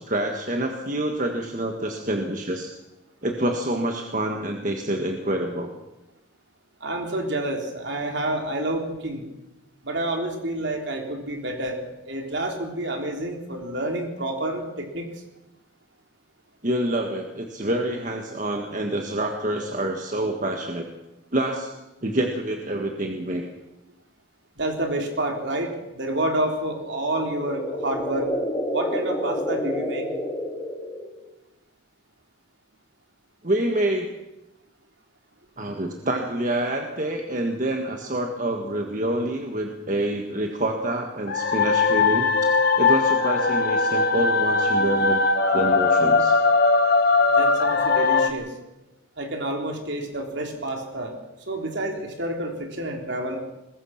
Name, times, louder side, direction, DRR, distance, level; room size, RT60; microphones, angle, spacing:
voice 1, 0.0-2.7 3.2-5.7 16.6-20.9 21.3-21.7 22.0-23.5 33.4-34.1 35.6-42.5 42.8-45.2 45.5-46.4, right 1 dB, 40° right, 3 dB, 1.6 m, -27 dB
voice 2, 6.8-9.2 9.8-15.1 24.6-28.3 28.7-30.1 47.3-48.5 49.2-51.2 51.5-53.4, right 1 dB, 60° right, 3 dB, 3.5 m, -29 dB
sound 1, 26.9-31.3, equal, 15° left, 3.3 m, -29 dB
sound 2, 41.3-48.3, left 4 dB, 50° left, 1.6 m, -20 dB
22.0 x 20.5 x 5.9 m, 0.98 s
head